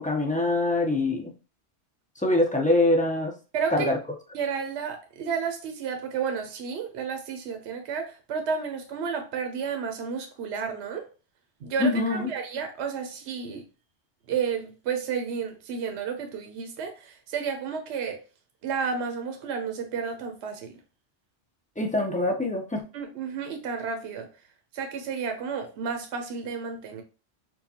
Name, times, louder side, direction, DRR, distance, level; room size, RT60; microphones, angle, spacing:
voice 1, 0.0-1.3 2.2-3.3 3.7-4.0 11.8-12.3 21.8-22.8, left 2 dB, 15° left, 0.3 m, -24 dB
voice 2, 3.5-3.9 4.3-11.0 11.6-13.6 14.3-18.2 18.6-20.7 22.9-24.3 24.7-27.0, right 6 dB, 70° right, 0.9 m, -31 dB
4.5 x 2.2 x 2.7 m
omnidirectional pair, 1.2 m